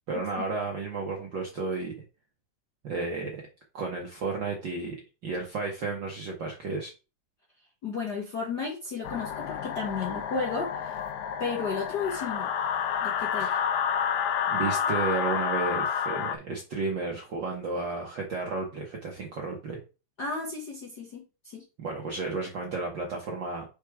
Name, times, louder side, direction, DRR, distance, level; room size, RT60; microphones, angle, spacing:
voice 1, 0.1-2.0 2.8-3.4 3.7-5.0 5.2-6.9 13.4-13.6 14.5-19.8 21.8-23.6, right 3 dB, 60° right, 0 dB, 1.2 m, -32 dB
voice 2, 7.8-11.0 11.4-12.5 13.0-13.6 20.2-21.6, left 4 dB, 55° left, -1 dB, 1.1 m, -33 dB
sound 1, 9.0-16.4, left 8 dB, 75° left, 1.9 m, -29 dB
5.0 x 4.6 x 4.8 m, 0.31 s
omnidirectional pair, 3.5 m